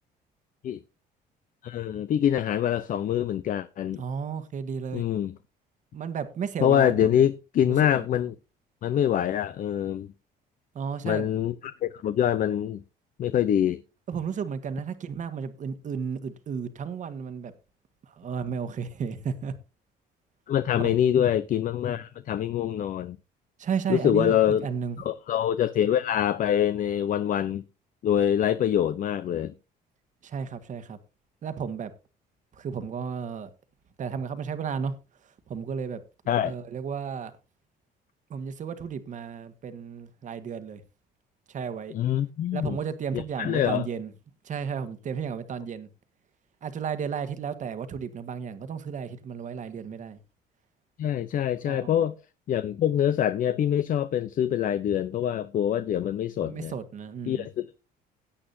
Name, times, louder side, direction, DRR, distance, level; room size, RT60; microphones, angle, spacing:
voice 1, 1.6-4.0 4.9-5.3 6.6-8.3 8.8-10.1 11.0-12.8 13.2-13.8 20.5-23.2 23.9-24.7 25.0-27.6 28.0-29.5 36.3-36.5 41.9-42.8 43.1-43.8 51.0-52.2 52.5-56.7 57.3-57.8, left 10 dB, 50° left, 0.7 m, -25 dB
voice 2, 4.0-5.0 5.9-7.3 7.6-8.0 10.7-11.2 14.1-17.5 18.0-19.5 20.8-20.9 23.6-25.0 30.2-31.0 31.4-31.9 32.5-33.5 34.0-35.0 35.2-36.0 36.4-37.3 38.3-40.8 41.5-42.0 42.5-44.1 44.4-45.9 46.6-50.2 51.6-51.9 56.4-57.5, right 6 dB, 50° right, 1.5 m, -33 dB
17.5 x 8.8 x 2.7 m
cardioid pair, 110°, 17 cm